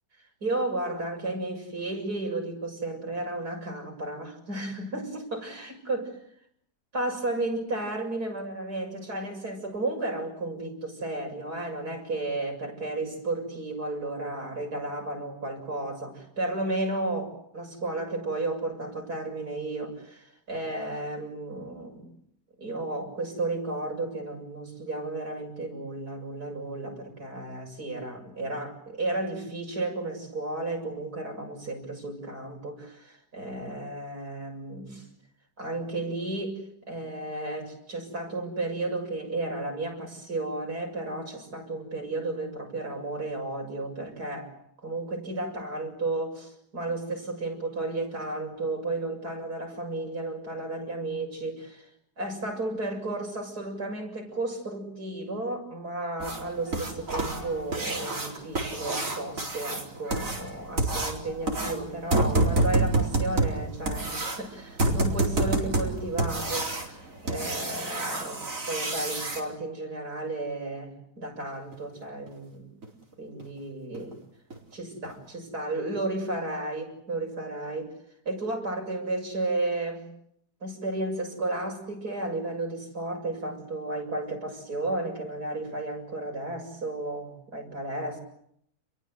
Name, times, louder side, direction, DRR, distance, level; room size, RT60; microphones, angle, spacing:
voice 1, 0.4-6.0 6.9-22.1 22.6-35.1 35.6-36.6 36.9-44.5 44.8-51.9 52.2-68.4 68.7-72.7 73.2-74.2 74.7-77.9 78.3-80.0 80.6-88.2, right 2 dB, 75° right, 1 dB, 7.6 m, -33 dB
sound 1, 56.2-69.4 71.7-71.8 72.3-72.4 72.8-72.9 73.4-73.5 73.9-74.1 74.5-74.6 75.0-75.1, right 2 dB, 55° right, 4.7 m, -28 dB
29.5 x 22.5 x 7.9 m, 0.72 s
omnidirectional pair, 1.7 m